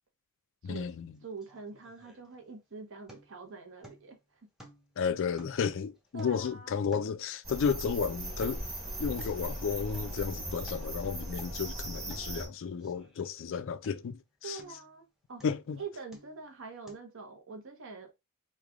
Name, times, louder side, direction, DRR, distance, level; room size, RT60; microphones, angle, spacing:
voice 1, 0.6-1.1 5.0-8.6 9.0-14.6 15.4-15.8, left 6 dB, 60° left, 0.4 m, -33 dB
sound 1, 0.8-0.9 1.2-2.6 3.1-3.4 3.8-4.2 4.6-5.0 5.4-7.3 7.6-8.0 8.3-8.7 9.2-9.4 9.9-10.2 10.5-10.9 11.3-11.6 12.1-12.3 12.8-13.5 13.8-14.2 14.6-14.9 15.4-15.7 16.1-16.5 16.9-17.0, equal, ahead, 0.7 m, -55 dB
voice 2, 1.2-4.4 6.1-6.9 14.4-15.4 15.8-18.1, right 4 dB, 60° right, 0.9 m, -45 dB
sound 2, 7.4-12.5, right 1 dB, 30° right, 1.3 m, -38 dB
3.2 x 2.3 x 3.5 m
head